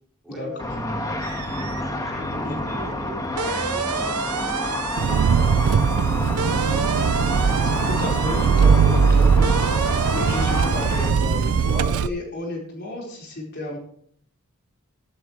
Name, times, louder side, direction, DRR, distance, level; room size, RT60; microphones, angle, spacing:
voice 1, 0.2-0.8 1.4-4.2 7.1-9.3, equal, ahead, -4 dB, 4.2 m, -41 dB
Car / Traffic noise roadway noise / Engine, 0.6-11.1, left 1 dB, 15° left, 1.3 m, -29 dB
sound 1, 1.2-1.9 2.2-12.1, right 6 dB, 90° right, 1.0 m, -30 dB
Engine, 5.0-12.1, right 6 dB, 70° right, 0.4 m, -20 dB
voice 2, 7.9-9.5 10.1-13.8, left 1 dB, 50° left, -1 dB, 4.4 m, -32 dB
14.5 x 12.0 x 3.2 m, 0.63 s
head